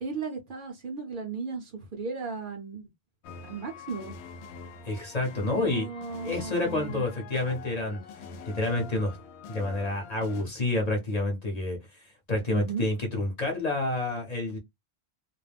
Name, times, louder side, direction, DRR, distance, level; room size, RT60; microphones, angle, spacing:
voice 1, 0.0-2.9 3.4-4.1 5.5-7.0 12.5-12.9, right 5 dB, 60° right, 0.8 m, -36 dB
sound 1, 3.2-10.4, left 4 dB, 85° left, 0.8 m, -44 dB
voice 2, 4.8-5.9 6.2-8.0 8.5-9.2 9.5-11.8 12.3-14.6, left 2 dB, 45° left, 0.8 m, -28 dB
2.3 x 2.1 x 3.2 m
omnidirectional pair, 1.1 m